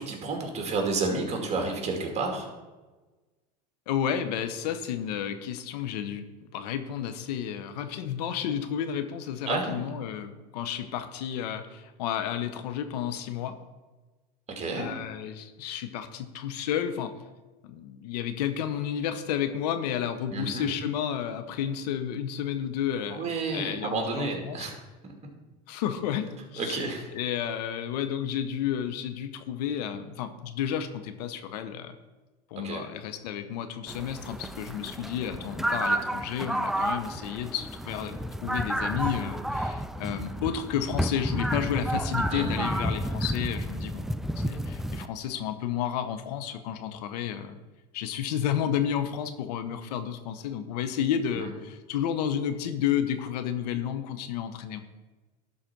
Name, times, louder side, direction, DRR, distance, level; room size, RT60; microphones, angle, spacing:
voice 1, 0.0-2.5 9.5-9.7 14.5-15.0 20.3-20.7 23.1-25.1 26.6-27.1 32.6-32.8 42.3-42.7 51.3-51.5, right 3 dB, 30° right, 2 dB, 2.5 m, -31 dB
voice 2, 3.9-13.5 14.7-17.1 17.6-24.7 25.7-26.8 27.1-32.0 32.5-44.1 44.4-47.6 47.9-54.8, left 9 dB, 80° left, 9 dB, 0.9 m, -31 dB
sound 1, 33.9-45.1, right 1 dB, ahead, 0.3 m, -31 dB
12.0 x 4.3 x 6.0 m, 1.2 s
supercardioid pair, 105°, 20 cm